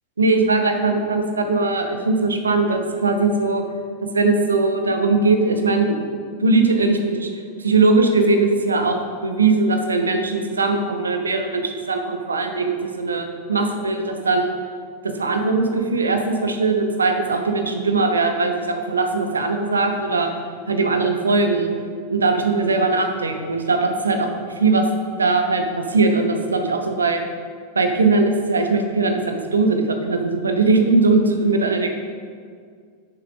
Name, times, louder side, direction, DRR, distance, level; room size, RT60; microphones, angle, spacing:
voice 1, 0.2-3.6 4.0-6.0 6.4-7.3 7.6-9.0 9.2-14.5 15.0-20.3 20.7-21.7 22.1-24.3 24.6-24.9 25.2-27.2 27.7-31.9, right 3 dB, 75° right, 6 dB, 0.9 m, -20 dB
10.5 x 7.0 x 3.7 m, 2.1 s
figure-of-eight pair, 90°, 0 cm